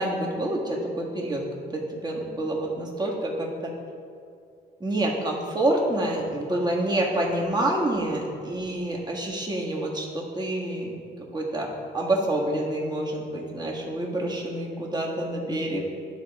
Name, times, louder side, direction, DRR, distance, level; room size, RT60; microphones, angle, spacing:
voice 1, 0.0-3.7 4.8-11.0 11.3-11.7 11.9-15.9, right 1 dB, 20° right, -2 dB, 1.6 m, -27 dB
12.0 x 4.1 x 3.6 m, 2.3 s
cardioid pair, 90°, 20 cm